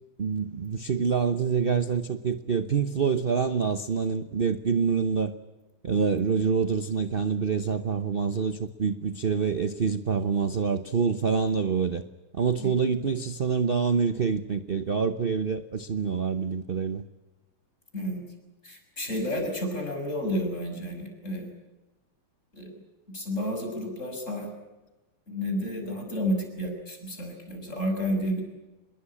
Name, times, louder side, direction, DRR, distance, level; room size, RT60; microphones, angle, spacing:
voice 1, 0.2-5.3 5.8-12.0 12.3-17.0, right 6 dB, 45° right, 10 dB, 0.7 m, -26 dB
voice 2, 18.6-21.5 22.5-22.7 23.1-24.5 25.3-28.4, equal, 35° left, 3 dB, 6.6 m, -31 dB
26.5 x 22.0 x 8.6 m, 1.1 s
omnidirectional pair, 2.3 m